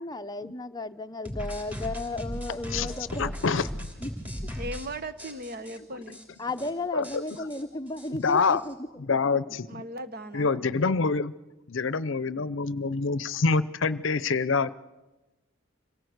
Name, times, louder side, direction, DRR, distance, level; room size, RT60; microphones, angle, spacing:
voice 1, 0.0-3.3 4.0-4.1 6.4-8.8 12.4-12.5, left 2 dB, 20° left, 8 dB, 0.7 m, -34 dB
sound 1, 1.3-4.9 5.2-5.8 6.1-6.2 6.5-6.7 7.0-8.7, equal, 10° right, 3.4 m, -37 dB
voice 2, 2.7-3.9 6.9-7.5 8.1-8.6 9.1-9.8 10.3-11.3 11.7-14.7, left 4 dB, 70° left, 16 dB, 0.6 m, -26 dB
voice 3, 4.5-6.2 9.5-10.6, right 1 dB, 45° right, 11 dB, 1.2 m, -38 dB
26.0 x 17.0 x 7.9 m, 1.1 s
head